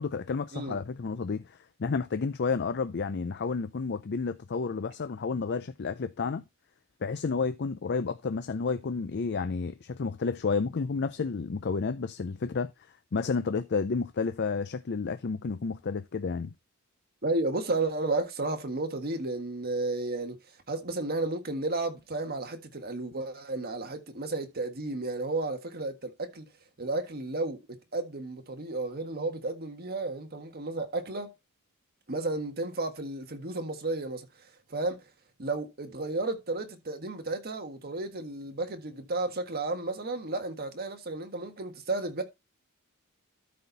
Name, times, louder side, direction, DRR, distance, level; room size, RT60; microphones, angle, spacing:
voice 1, 0.0-6.4 7.0-12.7 13.1-16.5, left 4 dB, 50° left, 0.5 m, -31 dB
voice 2, 17.2-20.4 20.7-26.4 26.8-27.6 27.9-31.3 32.1-35.0 35.4-42.2, right 2 dB, 45° right, 1.6 m, -33 dB
13.0 x 4.3 x 4.0 m
head